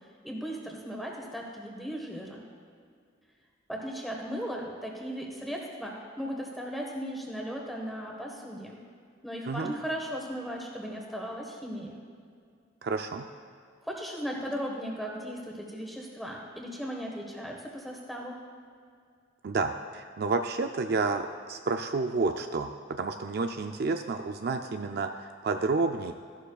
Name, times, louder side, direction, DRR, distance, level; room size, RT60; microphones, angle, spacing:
voice 1, 0.2-2.4 3.7-8.8 9.2-11.9 13.8-18.4, equal, ahead, -1 dB, 1.3 m, -37 dB
voice 2, 12.8-13.3 19.4-26.1, right 3 dB, 55° right, 6 dB, 0.4 m, -30 dB
14.5 x 11.5 x 2.3 m, 2.2 s
head